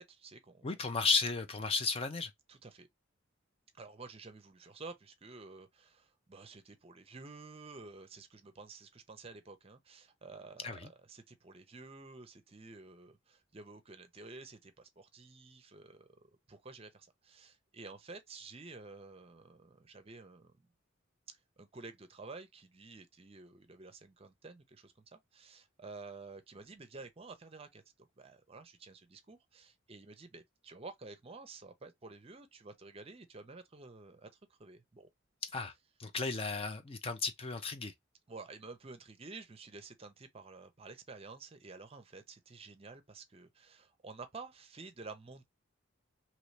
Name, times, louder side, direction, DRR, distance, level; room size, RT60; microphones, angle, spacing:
voice 1, 0.0-0.7 2.5-2.9 3.7-20.7 21.3-35.1 38.3-45.5, right 3 dB, 30° right, 0.6 m, -51 dB
voice 2, 0.6-2.3 10.6-10.9 35.5-35.7 36.0-37.9, left 4 dB, 30° left, 0.4 m, -34 dB
3.0 x 2.7 x 3.2 m
head